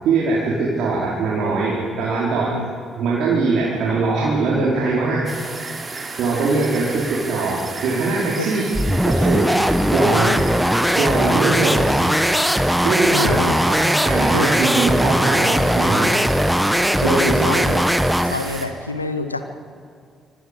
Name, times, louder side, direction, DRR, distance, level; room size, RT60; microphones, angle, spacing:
voice 1, 0.0-2.6 3.0-5.6 6.2-8.7 9.0-10.6 11.0-13.4 13.6-16.2 17.0-17.7, right 3 dB, 60° right, -6 dB, 4.6 m, -22 dB
sound 1, 5.3-18.7, right 3 dB, 35° right, 3.5 m, -33 dB
sound 2, 8.7-18.4, equal, ahead, 1.5 m, -19 dB
voice 2, 10.0-10.3 13.1-13.7 14.3-14.6 16.1-16.3 17.0-17.8 18.2-19.4, left 3 dB, 90° left, 9 dB, 1.0 m, -27 dB
26.5 x 25.5 x 5.5 m, 2.2 s
figure-of-eight pair, 40°, 0 cm